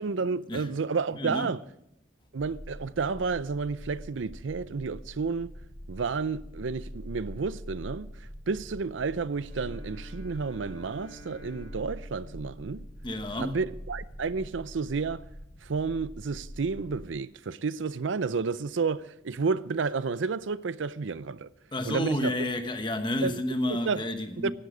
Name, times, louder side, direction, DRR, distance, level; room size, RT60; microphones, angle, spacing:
voice 1, 0.0-1.6 2.3-5.5 5.9-8.1 8.5-12.9 13.4-15.3 15.6-21.5 21.9-22.5 23.2-23.3 23.7-24.0 24.4-24.5, right 4 dB, 90° right, 0.5 m, -31 dB
voice 2, 1.1-1.5 13.0-13.6 21.7-24.5, left 1 dB, 25° left, 1.1 m, -30 dB
sound 1, 2.4-17.0, equal, 80° left, 3.5 m, -44 dB
Bowed string instrument, 9.3-13.4, equal, 70° right, 2.9 m, -51 dB
16.5 x 11.5 x 5.0 m
head